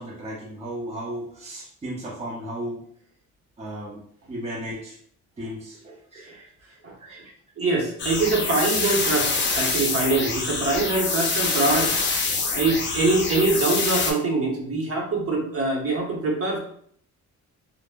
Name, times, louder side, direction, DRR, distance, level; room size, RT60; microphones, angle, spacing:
voice 1, 0.0-2.8 3.6-4.0 4.3-5.0 5.4-7.2, right 1 dB, 20° right, -4 dB, 0.6 m, -35 dB
voice 2, 7.6-11.9 12.5-16.6, right 3 dB, 50° right, -1 dB, 0.9 m, -24 dB
sound 1, 8.0-14.1, left 4 dB, 40° left, 0.6 m, -25 dB
2.1 x 2.0 x 3.4 m, 0.62 s
cardioid pair, 90°, 30 cm